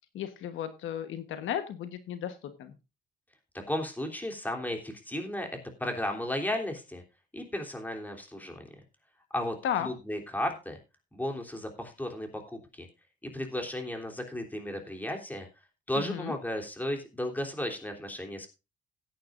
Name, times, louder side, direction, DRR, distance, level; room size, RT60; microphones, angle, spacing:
voice 1, 0.1-2.7 9.6-9.9 16.0-16.4, left 9 dB, 80° left, 9 dB, 1.3 m, -34 dB
voice 2, 3.7-5.5 5.8-7.0 7.3-8.6 9.3-10.8 11.1-12.9 13.2-15.5 15.9-18.5, left 1 dB, 10° left, 3 dB, 3.3 m, -34 dB
17.0 x 9.4 x 2.6 m, 0.29 s
cardioid pair, 90°, 20 cm